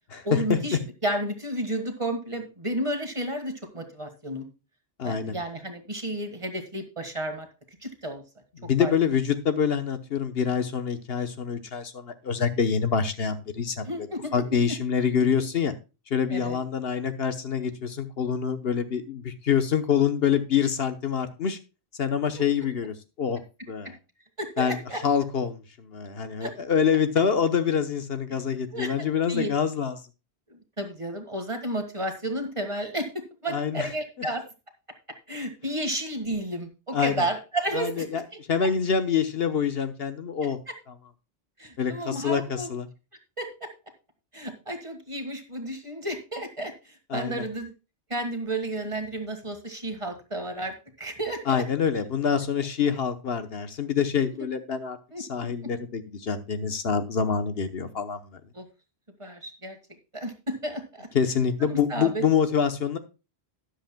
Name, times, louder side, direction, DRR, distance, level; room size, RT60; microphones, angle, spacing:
voice 1, 0.2-4.5 5.0-7.5 7.8-8.2 8.8-8.9 13.8-14.3 14.7-14.8 16.3-16.6 22.3-22.4 23.8-23.9 24.4-25.0 26.4-26.5 28.7-29.5 30.5-34.4 35.3-38.2 38.6-38.7 40.4-40.8 41.6-42.7 43.4-43.7 44.3-47.7 48.1-51.6 55.1-55.7 58.5-58.6 59.2-59.8 60.1-61.1 61.6-62.2, right 1 dB, 30° right, 6 dB, 1.7 m, -32 dB
voice 2, 5.0-5.4 8.6-13.9 14.3-15.7 16.1-21.6 22.0-23.4 23.7-23.9 24.6-29.9 33.5-33.9 36.9-37.2 37.7-40.6 41.8-42.9 47.1-47.4 51.5-58.2 61.1-63.0, left 7 dB, 70° left, 9 dB, 1.2 m, -26 dB
13.0 x 10.5 x 2.2 m, 0.29 s
omnidirectional pair, 1.1 m